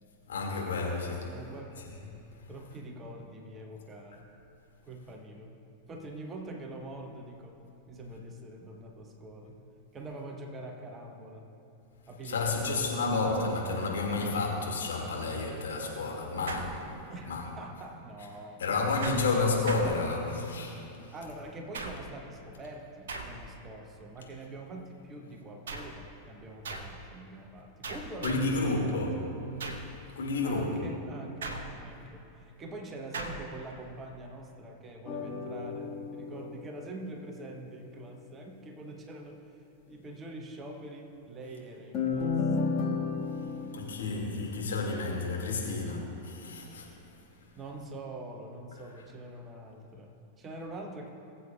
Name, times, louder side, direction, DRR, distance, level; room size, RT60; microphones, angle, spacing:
voice 1, 0.3-1.3 12.2-16.9 17.3-17.4 18.6-21.1 28.2-29.2 30.2-30.7 43.7-46.9, left 3 dB, 65° left, -2 dB, 2.0 m, -30 dB
voice 2, 1.3-1.9 2.5-4.3 4.8-5.6 5.9-7.6 7.9-9.6 9.9-11.5 12.1-12.8 17.1-19.6 20.8-29.3 30.4-42.7 47.5-51.1, right 2 dB, 25° right, 3 dB, 1.0 m, -44 dB
sound 1, 16.5-17.3 19.0-20.5 21.7-22.3 23.1-23.7 25.7-26.1 26.6-27.1 27.8-28.6 29.6-30.0 31.4-32.0 33.1-33.6, right 3 dB, 60° right, 0.9 m, -40 dB
sound 2, 35.1-37.6 41.9-43.7, left 4 dB, 35° left, 1.6 m, -32 dB
20.0 x 7.6 x 2.3 m, 2.9 s
figure-of-eight pair, 90°, 0 cm